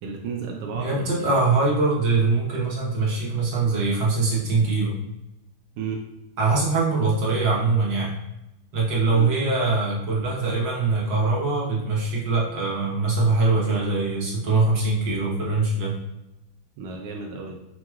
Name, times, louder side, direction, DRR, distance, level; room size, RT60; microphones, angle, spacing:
voice 1, 0.0-1.4 5.8-6.0 9.1-9.3 16.8-17.6, right 4 dB, 90° right, 0 dB, 1.6 m, -33 dB
voice 2, 0.8-5.0 6.4-8.1 8.7-15.9, right 3 dB, 60° right, -4 dB, 1.7 m, -22 dB
5.2 x 3.0 x 2.3 m, 0.91 s
omnidirectional pair, 2.4 m